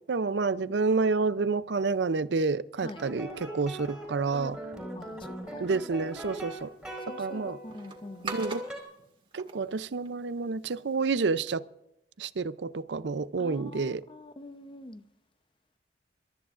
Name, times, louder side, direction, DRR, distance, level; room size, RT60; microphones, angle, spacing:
voice 1, 0.0-4.6 5.6-6.7 7.2-7.6 8.2-8.7 9.3-11.6 12.2-14.0, right 4 dB, 80° right, 0.5 m, -29 dB
sound 1, 3.0-8.8, right 1 dB, 5° right, 4.5 m, -41 dB
sound 2, 6.0-11.1, right 4 dB, 30° right, 2.0 m, -46 dB
voice 2, 7.1-8.3 13.4-15.0, left 2 dB, 30° left, 0.8 m, -45 dB
27.5 x 13.5 x 2.5 m
head